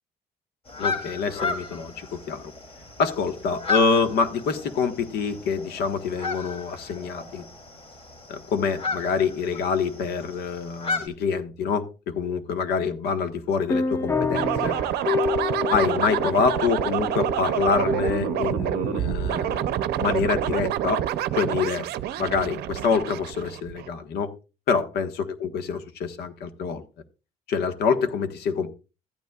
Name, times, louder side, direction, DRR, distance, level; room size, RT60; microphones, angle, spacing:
sound 1, 0.7-11.1, left 4 dB, 35° left, 2.9 m, -34 dB
voice 1, 0.8-2.5 3.0-7.4 8.3-14.7 15.7-21.0 21.3-21.9 22.2-24.3 24.7-26.8 27.5-28.7, left 5 dB, 75° left, 1.4 m, -26 dB
sound 2, 13.7-21.8, left 5 dB, 15° left, 0.4 m, -31 dB
sound 3, 14.3-23.9, right 12 dB, 75° right, 0.6 m, -27 dB
14.5 x 9.3 x 2.4 m
cardioid pair, 110°, 17 cm